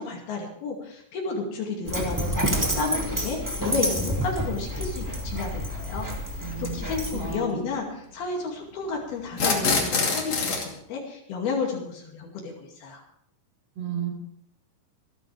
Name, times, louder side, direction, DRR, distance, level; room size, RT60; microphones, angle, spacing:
voice 1, 0.0-13.0, left 4 dB, 75° left, -1 dB, 4.3 m, -32 dB
Dog, 1.9-7.4, equal, 5° right, 1.5 m, -29 dB
sound 1, 5.0-5.1 6.5-6.7 9.3-10.7, left 4 dB, 45° left, 3.2 m, -25 dB
voice 2, 6.4-6.8 7.1-7.6 13.8-14.1, right 6 dB, 85° right, 1 dB, 6.8 m, -32 dB
26.0 x 11.5 x 3.4 m, 0.68 s
omnidirectional pair, 4.4 m